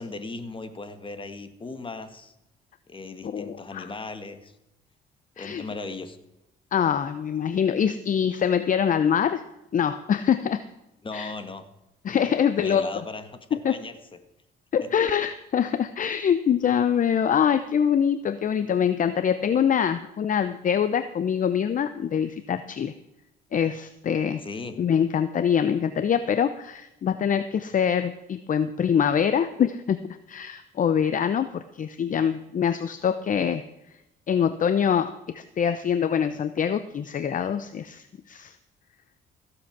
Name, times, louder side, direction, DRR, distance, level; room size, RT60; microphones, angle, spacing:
voice 1, 0.0-2.3 2.9-4.6 5.4-6.2 11.0-11.7 12.3-14.0 14.8-14.9 24.4-24.8, left 3 dB, 30° left, 10 dB, 1.6 m, -37 dB
voice 2, 3.2-3.9 5.4-5.6 6.7-9.4 9.7-10.6 11.1-11.3 12.0-12.9 13.6-13.8 14.7-22.9 23.5-24.4 24.8-30.0 30.3-33.6 34.3-38.6, left 8 dB, 45° left, 12 dB, 0.7 m, -24 dB
15.5 x 8.1 x 6.0 m, 0.92 s
cardioid pair, 80°, 19 cm